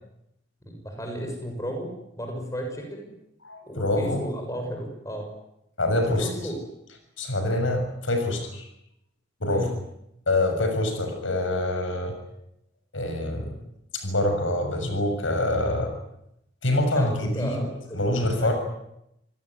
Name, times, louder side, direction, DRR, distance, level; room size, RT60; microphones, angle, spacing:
voice 1, 0.8-3.1 3.7-5.3 6.0-6.6 9.5-9.7 16.9-18.5, equal, 15° left, 3 dB, 6.7 m, -34 dB
voice 2, 3.4-4.2 5.8-6.3 7.2-8.7 9.4-9.7 10.3-12.1 12.9-13.5 13.9-15.9 16.6-17.6 17.9-18.5, left 1 dB, 90° left, 6 dB, 6.9 m, -25 dB
28.5 x 18.0 x 9.8 m, 0.81 s
head